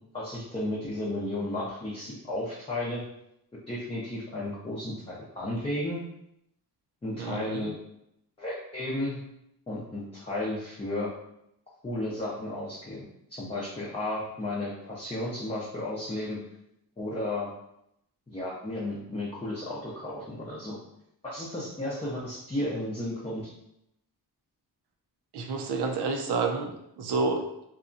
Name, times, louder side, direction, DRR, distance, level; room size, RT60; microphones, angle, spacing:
voice 1, 0.1-3.0 3.7-6.0 7.0-7.7 8.4-9.2 9.7-11.1 11.8-16.4 17.0-17.5 18.3-20.8 21.2-23.5, left 1 dB, 15° left, -7 dB, 0.5 m, -33 dB
voice 2, 7.1-7.7 25.3-26.7 27.0-27.5, right 4 dB, 80° right, 2 dB, 0.6 m, -29 dB
2.7 x 2.2 x 2.5 m, 0.79 s
cardioid pair, 95°, 39 cm